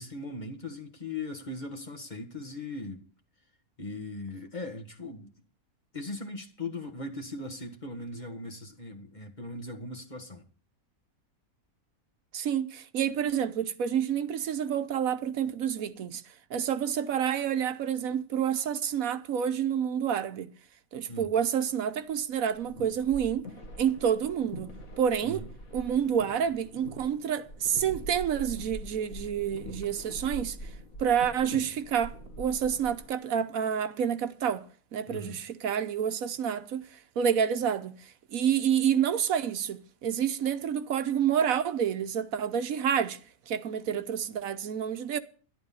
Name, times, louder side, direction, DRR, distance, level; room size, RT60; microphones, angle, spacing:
voice 1, 0.0-3.0 3.8-5.3 5.9-10.4 21.1-21.3 25.2-25.5 35.1-35.4, left 2 dB, 30° left, 1.6 m, -39 dB
voice 2, 12.3-16.2 16.5-20.5 20.9-23.5 23.8-25.4 25.7-30.7 31.0-34.6 34.9-43.2 43.5-45.2, right 8 dB, 75° right, 1.2 m, -28 dB
sound 1, 22.4-33.2, equal, 70° left, 2.2 m, -44 dB
11.5 x 11.5 x 5.5 m
omnidirectional pair, 1.5 m